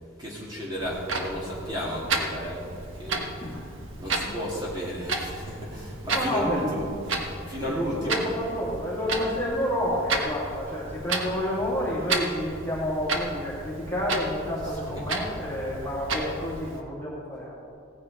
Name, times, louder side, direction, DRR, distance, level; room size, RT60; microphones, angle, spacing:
voice 1, 0.2-2.6 2.9-3.3 4.0-8.3 14.7-15.1, equal, 20° right, -6 dB, 2.4 m, -33 dB
Clock, 0.8-16.8, right 3 dB, 70° right, 1.3 m, -33 dB
voice 2, 6.1-6.8 7.6-17.7, equal, 10° left, -7 dB, 2.7 m, -30 dB
16.5 x 9.8 x 4.1 m, 2.5 s
head